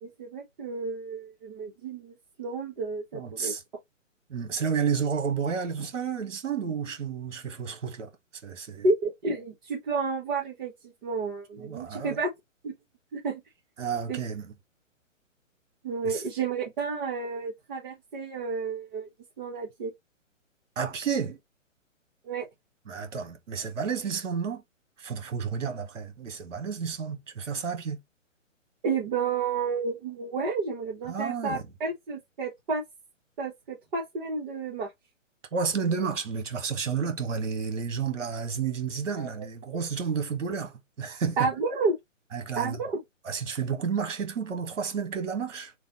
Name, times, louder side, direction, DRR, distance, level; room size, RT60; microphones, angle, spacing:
voice 1, 0.0-3.5 8.8-12.3 12.6-12.7 13.1-13.4 14.1-14.2 15.8-19.1 19.4-19.9 22.2-22.5 28.8-32.8 33.4-34.9 39.2-39.4 41.4-42.0 42.6-43.0, right 4 dB, 35° right, 1.2 m, -31 dB
voice 2, 3.1-3.6 4.3-8.1 8.4-8.9 11.6-12.2 13.8-14.5 16.0-16.2 20.7-21.4 22.9-24.6 25.0-28.0 31.1-31.7 35.5-41.5 42.3-42.8 43.2-45.7, right 6 dB, 70° right, 1.4 m, -31 dB
3.3 x 2.3 x 3.9 m
hypercardioid pair, 145°, 39 cm